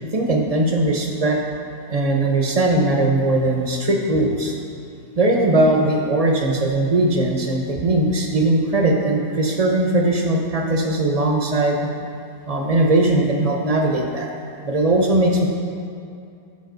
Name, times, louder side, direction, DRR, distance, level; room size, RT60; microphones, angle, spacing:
voice 1, 0.1-1.4 1.9-4.5 5.2-11.9 12.5-14.3 14.6-15.5, right 2 dB, 30° right, 1 dB, 0.7 m, -19 dB
12.5 x 5.9 x 3.9 m, 2.5 s
omnidirectional pair, 1.7 m